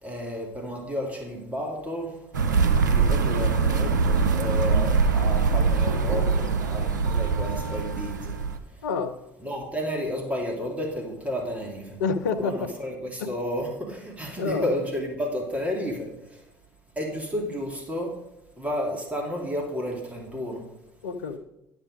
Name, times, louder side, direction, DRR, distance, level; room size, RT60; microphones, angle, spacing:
voice 1, 0.0-2.2 2.7-8.4 8.7-8.8 9.4-12.0 12.4-16.4 17.0-18.1 18.6-20.6, equal, 15° right, 0 dB, 2.5 m, -32 dB
sound 1, 2.3-8.6, right 5 dB, 80° right, 0.8 m, -23 dB
voice 2, 8.8-9.1 12.0-12.7 13.2-13.3 14.4-14.7 21.0-21.4, left 4 dB, 75° left, 11 dB, 0.7 m, -27 dB
12.0 x 6.1 x 5.1 m, 0.89 s
figure-of-eight pair, 60°, 10 cm